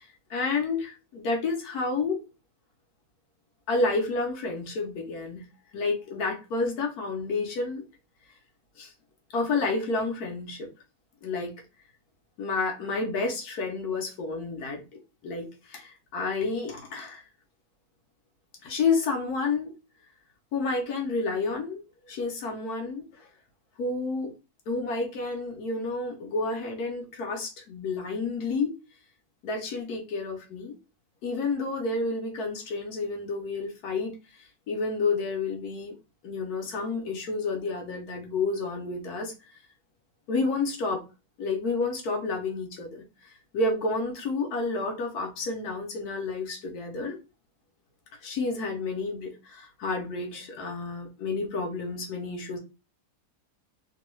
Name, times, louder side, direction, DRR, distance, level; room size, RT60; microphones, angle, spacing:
voice 1, 0.0-2.2 3.7-5.4 5.7-7.8 8.8-8.9 9.3-10.7 11.2-11.5 12.4-14.8 15.2-17.2 18.6-19.7 20.5-23.3 23.8-24.3 24.7-28.7 29.4-30.7 31.2-35.9 36.2-39.6 40.3-41.0 41.4-47.2 48.2-52.6, left 3 dB, 75° left, 2 dB, 1.2 m, -30 dB
3.0 x 2.2 x 3.0 m, 0.30 s
omnidirectional pair, 1.7 m